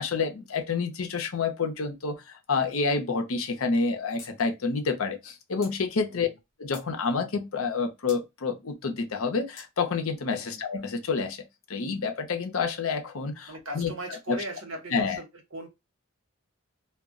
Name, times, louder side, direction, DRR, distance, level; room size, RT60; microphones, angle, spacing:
voice 1, 0.0-6.3 6.6-13.9 14.3-14.4 14.9-15.2, left 4 dB, 80° left, 0.7 m, -28 dB
sound 1, 4.2-4.3 4.6-4.7 5.6-5.8 6.4-6.9 8.1-8.2 9.6-9.7, left 4 dB, 55° left, 0.9 m, -46 dB
voice 2, 13.5-15.3 15.5-15.7, right 2 dB, 65° right, 1.0 m, -38 dB
2.3 x 2.1 x 3.6 m
head